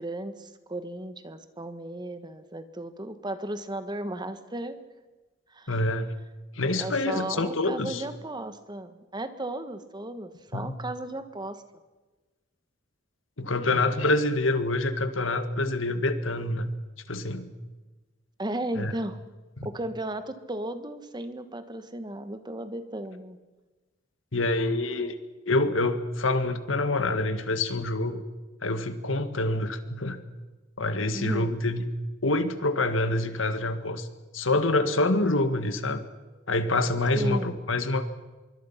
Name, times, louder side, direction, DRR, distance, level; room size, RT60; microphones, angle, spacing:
voice 1, 0.0-4.8 5.5-5.8 6.8-11.6 18.4-19.2 19.6-23.4 31.1-31.5 37.1-37.5, right 1 dB, 20° right, 10 dB, 1.4 m, -35 dB
voice 2, 5.7-6.1 6.6-8.0 10.5-10.7 13.4-16.7 17.1-17.5 18.8-18.9 19.6-19.7 24.3-25.2 25.5-28.2 28.6-30.2 30.8-31.9 32.2-34.1 34.3-36.0 36.5-38.0, left 2 dB, 85° left, 10 dB, 1.9 m, -26 dB
25.0 x 23.5 x 5.9 m, 1.2 s
head